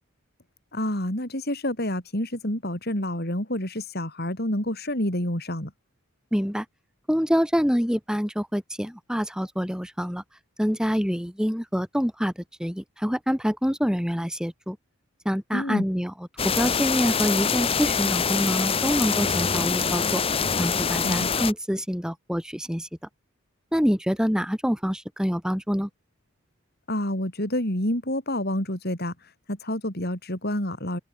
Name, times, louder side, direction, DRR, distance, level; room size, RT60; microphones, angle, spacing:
voice 1, 0.7-5.7 15.5-15.9 21.0-21.3 26.9-29.1 29.5-31.0, left 1 dB, 45° left, 5.7 m, -28 dB
voice 2, 6.3-6.7 7.1-10.2 10.6-12.3 12.6-14.8 15.2-16.1 16.4-20.2 20.6-22.9 23.7-25.9, equal, 5° right, 4.3 m, -26 dB
sound 1, 16.4-21.5, left 6 dB, 25° left, 0.8 m, -25 dB
head